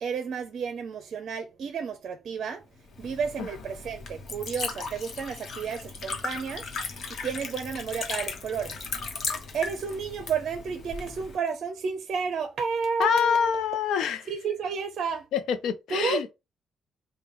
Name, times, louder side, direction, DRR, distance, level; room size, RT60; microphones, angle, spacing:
voice 1, 0.0-2.6 3.0-6.7 7.2-8.8 9.5-13.5 14.3-15.3 15.9-16.2, right 6 dB, 60° right, 0.6 m, -31 dB
Liquid, 2.8-11.4, left 4 dB, 60° left, 1.0 m, -37 dB
voice 2, 13.0-14.2 15.3-16.3, left 7 dB, 80° left, 0.6 m, -25 dB
3.6 x 2.3 x 4.3 m
cardioid pair, 90°, 0 cm